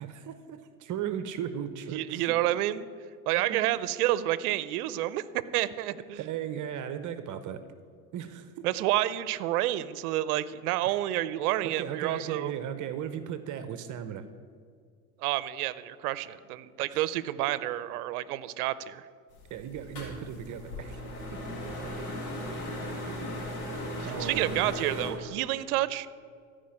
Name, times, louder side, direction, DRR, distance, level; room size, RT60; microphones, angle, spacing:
voice 1, 0.0-2.4 3.5-3.6 6.1-7.6 8.1-8.7 10.9-11.0 11.6-14.3 16.9-17.0 19.5-21.0 21.3-21.4 21.6-21.9 24.0-24.7, right 9 dB, 45° right, 10 dB, 0.8 m, -36 dB
voice 2, 1.9-2.9 3.3-6.2 8.6-12.5 15.2-19.1 24.0-26.1, right 14 dB, 80° right, 16 dB, 0.7 m, -29 dB
sound 1, 19.3-25.1, left 1 dB, 90° left, 3.5 m, -37 dB
14.5 x 5.1 x 8.7 m, 2.1 s
supercardioid pair, 95°, 44 cm